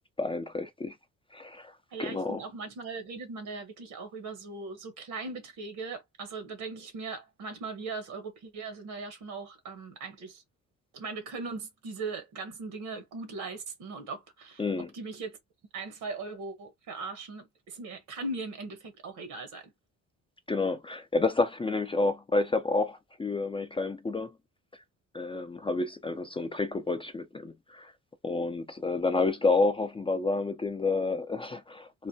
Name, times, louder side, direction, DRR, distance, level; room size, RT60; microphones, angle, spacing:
voice 1, 0.2-1.0 1.3-1.7 2.0-2.4 14.6-14.9 20.5-24.3 25.1-27.9 28.2-32.1, left 3 dB, 20° left, 0.4 m, -29 dB
voice 2, 1.9-10.4 10.9-14.6 14.9-15.4 15.7-19.7, right 3 dB, 80° right, 1.0 m, -39 dB
3.1 x 2.1 x 2.6 m
cardioid pair, 90°, 30 cm